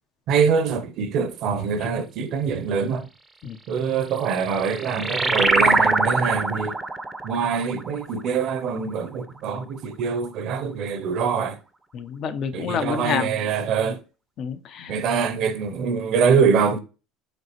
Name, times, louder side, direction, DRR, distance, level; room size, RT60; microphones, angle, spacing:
voice 1, 0.3-3.1 3.7-6.8 7.2-11.6 12.5-14.0 14.9-16.8, right 6 dB, 60° right, 0.7 m, -24 dB
sound 1, 4.2-9.2, right 2 dB, 15° right, 0.5 m, -24 dB
voice 2, 11.9-13.3 14.4-14.9, left 7 dB, 50° left, 0.6 m, -28 dB
5.2 x 3.2 x 3.0 m
hypercardioid pair, 80°, 0 cm